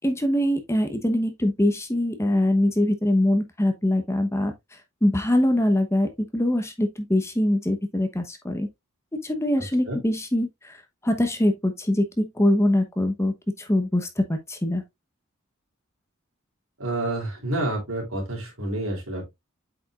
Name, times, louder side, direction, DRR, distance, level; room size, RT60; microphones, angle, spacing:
voice 1, 0.0-4.5 5.0-8.7 9.2-10.5 11.0-14.8, left 1 dB, 15° left, 1.0 m, -23 dB
voice 2, 16.8-19.2, right 1 dB, 80° right, 3.5 m, -28 dB
7.9 x 5.1 x 2.4 m
head